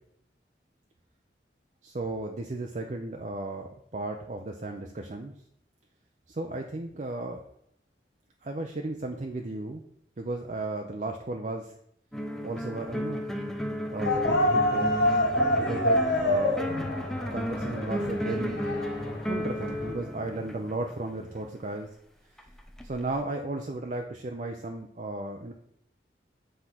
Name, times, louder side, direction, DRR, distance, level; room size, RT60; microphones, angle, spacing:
voice 1, 1.8-5.3 6.3-7.4 8.4-9.8 10.2-11.7 12.4-13.2 13.9-15.0 15.6-16.6 17.1-18.6 19.3-21.9 22.8-25.5, right 2 dB, 40° right, 3 dB, 0.6 m, -35 dB
sound 1, 12.1-21.1 22.4-23.2, equal, 5° left, 0.5 m, -34 dB
sound 2, 14.1-19.9, left 1 dB, 70° left, 1.5 m, -27 dB
7.9 x 3.8 x 5.8 m, 0.71 s
head